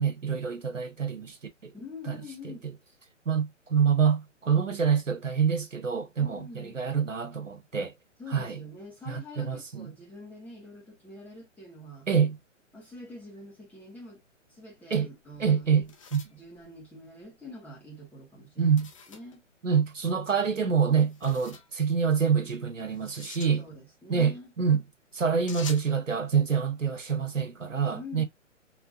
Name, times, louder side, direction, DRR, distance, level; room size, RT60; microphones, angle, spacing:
voice 1, 0.0-1.4 1.6-1.7 2.1-2.5 3.3-7.9 8.3-8.6 9.1-9.9 12.1-12.4 14.9-15.1 15.4-16.2 18.6-18.9 19.6-23.6 24.1-24.8 25.1-28.2, right 6 dB, 75° right, 1.1 m, -26 dB
voice 2, 1.7-2.7 6.1-6.8 8.2-12.1 12.7-14.2 14.5-15.9 16.3-18.8 19.1-19.4 23.6-24.5 27.9-28.2, left 1 dB, 5° left, 1.5 m, -45 dB
sound 1, 15.2-17.4 18.8-19.4 21.0-21.7 22.9-23.5 25.5-25.9, left 5 dB, 25° left, 0.6 m, -46 dB
4.8 x 3.0 x 2.4 m
figure-of-eight pair, 130°, 38 cm